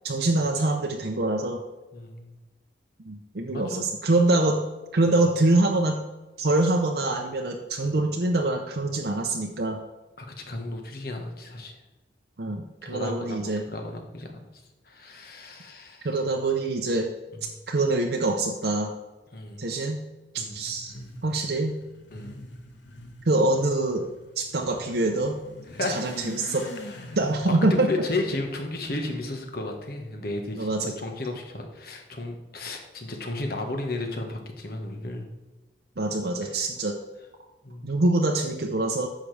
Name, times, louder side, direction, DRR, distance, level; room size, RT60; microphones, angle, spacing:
voice 1, 0.0-1.6 3.0-4.6 4.9-6.0 6.4-9.8 12.4-13.6 16.0-17.1 17.7-18.9 19.6-20.0 20.3-20.9 21.2-21.8 23.3-24.1 24.4-25.4 25.9-26.7 27.2-27.9 30.6-30.9 36.0-37.0 37.8-39.1, right 2 dB, 60° right, 2 dB, 0.7 m, -24 dB
voice 2, 1.9-2.4 3.5-3.8 10.2-11.8 12.8-14.4 14.8-16.2 17.3-17.5 19.3-19.7 20.4-20.6 22.1-22.4 25.7-26.1 26.9-27.2 27.5-35.2 36.4-36.7 37.6-37.9, left 2 dB, 55° left, 3 dB, 1.4 m, -34 dB
Motorcycle / Accelerating revving vroom, 20.4-29.3, left 1 dB, 85° left, 1.2 m, -44 dB
9.9 x 6.6 x 3.3 m, 1.1 s
head